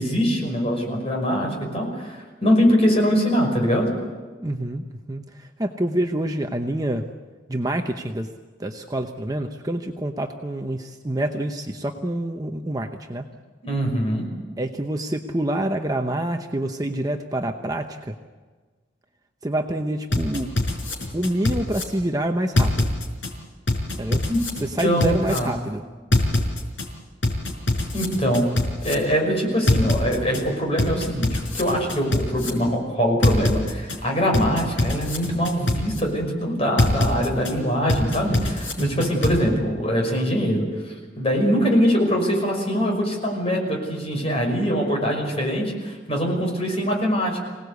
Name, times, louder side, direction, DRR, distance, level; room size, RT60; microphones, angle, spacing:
voice 1, 0.0-3.9 13.6-14.3 24.3-24.4 24.8-25.5 27.9-28.4 28.8-47.4, equal, 30° left, 1 dB, 5.8 m, -23 dB
voice 2, 4.4-7.1 7.5-8.3 8.6-13.3 14.6-18.2 19.4-20.5 21.1-22.9 24.0-24.2 24.6-25.8 38.8-39.1, right 1 dB, 20° right, 4 dB, 0.9 m, -27 dB
sound 1, 20.1-21.8 22.6-23.3 23.7-25.4 26.1-26.9 27.2-28.9 29.7-30.4 30.8-32.5 33.2-34.0 34.3-36.0 36.8-37.5 37.9-39.3, left 2 dB, 80° left, 4.7 m, -23 dB
25.5 x 18.5 x 8.2 m, 1.4 s
head